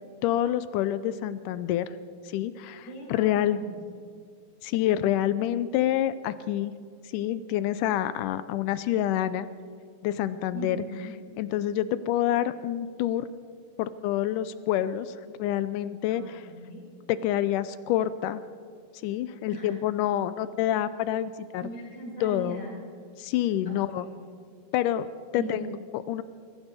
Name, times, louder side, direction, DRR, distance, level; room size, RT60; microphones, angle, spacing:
voice 1, 0.2-1.9 2.3-3.6 4.6-6.7 7.1-9.5 10.0-10.8 11.4-13.3 13.8-16.4 17.1-18.4 19.0-21.6 22.2-22.6 23.2-24.1 24.7-25.1 25.3-26.2, left 12 dB, 80° left, 14 dB, 1.9 m, -27 dB
voice 2, 2.9-3.7 10.5-11.2 16.1-16.8 19.5-19.8 21.6-22.8 23.7-24.2 25.3-25.5, right 2 dB, 55° left, -5 dB, 7.2 m, -40 dB
22.0 x 15.5 x 4.1 m, 2.2 s
omnidirectional pair, 4.0 m